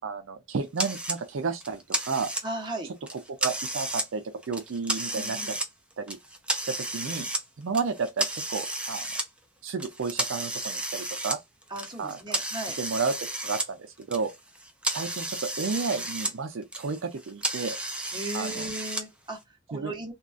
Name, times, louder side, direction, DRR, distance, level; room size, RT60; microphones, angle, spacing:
voice 1, 0.0-2.3 3.3-5.4 6.0-6.2 6.6-7.3 7.6-9.1 9.6-11.4 12.0-12.2 12.8-13.1 13.4-14.3 14.9-17.8 18.3-18.6 19.7-19.9, right 4 dB, 65° right, 0.5 m, -32 dB
sound 1, 0.8-1.2 1.6-2.7 3.1-4.1 4.4-5.7 6.1-7.4 7.7-9.2 9.8-13.7 14.0-16.3 16.6-19.0, right 1 dB, 5° right, 0.4 m, -32 dB
voice 2, 2.4-2.9 5.1-5.6 11.7-12.8 18.1-20.1, right 1 dB, 25° right, 0.9 m, -36 dB
3.6 x 2.4 x 2.4 m
head